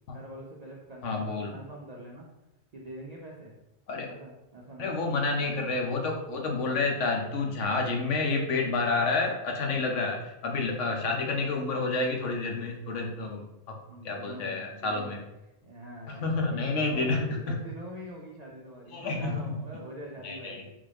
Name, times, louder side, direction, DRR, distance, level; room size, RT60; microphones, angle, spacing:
voice 1, 0.1-2.3 2.7-3.5 4.0-5.0 9.7-9.8 13.9-15.2 15.6-20.7, right 1 dB, 65° right, -2 dB, 0.4 m, -44 dB
voice 2, 1.0-1.5 3.9-4.1 4.8-13.8 14.0-15.2 16.1-17.6 18.9-19.5 20.2-20.6, left 3 dB, 80° left, 2 dB, 1.0 m, -29 dB
3.6 x 2.5 x 3.3 m, 0.94 s
omnidirectional pair, 1.3 m